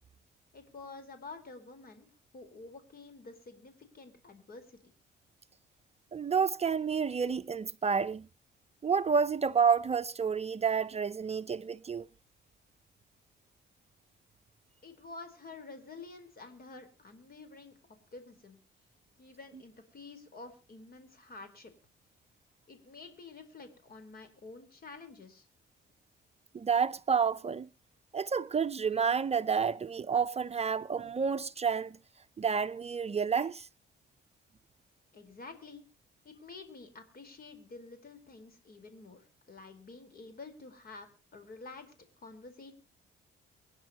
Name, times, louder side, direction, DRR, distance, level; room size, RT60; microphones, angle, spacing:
voice 1, 0.5-2.1 2.3-4.8 14.8-18.6 19.2-21.7 22.7-25.5 35.1-35.8 36.2-42.7, left 3 dB, 50° left, 4.4 m, -49 dB
voice 2, 6.1-8.3 8.8-12.1 26.5-27.7 28.1-32.0 32.4-33.7, right 6 dB, 30° right, 0.6 m, -29 dB
24.5 x 10.5 x 3.0 m
cardioid pair, 90°, 20 cm